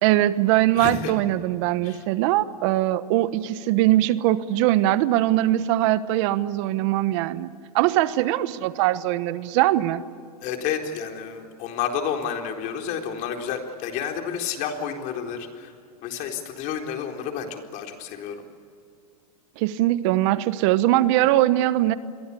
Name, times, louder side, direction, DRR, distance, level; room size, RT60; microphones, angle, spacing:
voice 1, 0.0-10.0 19.6-22.0, right 15 dB, 55° right, 14 dB, 1.1 m, -21 dB
voice 2, 0.7-1.1 1.8-2.0 10.4-15.7 16.0-18.4, left 7 dB, 45° left, 3 dB, 4.1 m, -30 dB
29.0 x 22.5 x 8.5 m, 2.3 s
supercardioid pair, 130°, 19 cm